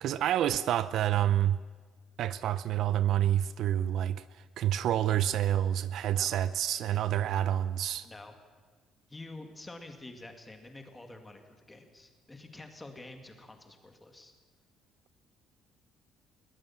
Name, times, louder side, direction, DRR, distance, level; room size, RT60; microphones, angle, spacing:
voice 1, 0.0-1.6 2.2-4.2 4.6-8.1, right 11 dB, 55° right, 15 dB, 0.6 m, -28 dB
voice 2, 8.0-8.3 9.1-14.3, left 2 dB, 10° left, 5 dB, 2.2 m, -48 dB
22.5 x 18.5 x 7.2 m, 1.5 s
cardioid pair, 170°, 0 cm